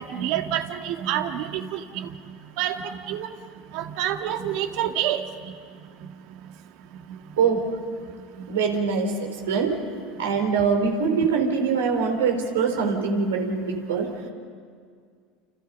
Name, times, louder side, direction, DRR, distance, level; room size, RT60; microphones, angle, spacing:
voice 1, 0.0-2.1 2.6-3.3 3.7-5.2, right 11 dB, 65° right, 6 dB, 1.9 m, -28 dB
voice 2, 7.4-7.7 8.5-9.8 10.2-14.1, right 5 dB, 85° right, 3 dB, 4.2 m, -23 dB
29.5 x 29.5 x 5.5 m, 2.1 s
hypercardioid pair, 85°, 0 cm